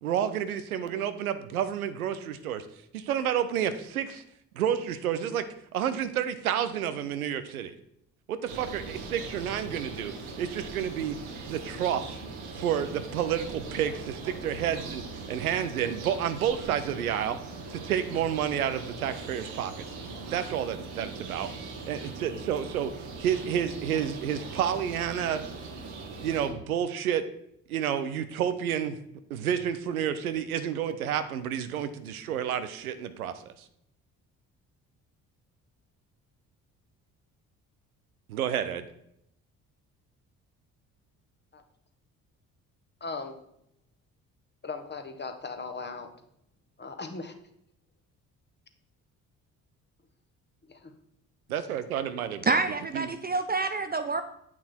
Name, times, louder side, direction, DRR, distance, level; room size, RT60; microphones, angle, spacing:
voice 1, 0.0-2.7 2.9-4.2 4.5-5.4 5.7-7.7 8.3-10.1 10.4-11.2 11.5-12.1 12.6-15.0 15.3-17.4 17.7-19.8 20.3-21.5 21.9-22.9 23.2-25.4 26.2-27.2 27.7-29.0 29.3-33.5 38.3-38.9 51.5-52.6 52.9-53.1, right 9 dB, 90° right, 11 dB, 0.6 m, -30 dB
sound 1, 8.5-26.5, right 3 dB, 75° right, 1.5 m, -40 dB
voice 2, 43.0-43.3 44.6-46.1 46.8-47.3 50.7-50.9, left 4 dB, 25° left, 7 dB, 1.3 m, -38 dB
voice 3, 52.5-54.2, right 3 dB, 25° right, 9 dB, 0.5 m, -27 dB
8.5 x 6.1 x 4.2 m, 0.74 s
hypercardioid pair, 45°, 42 cm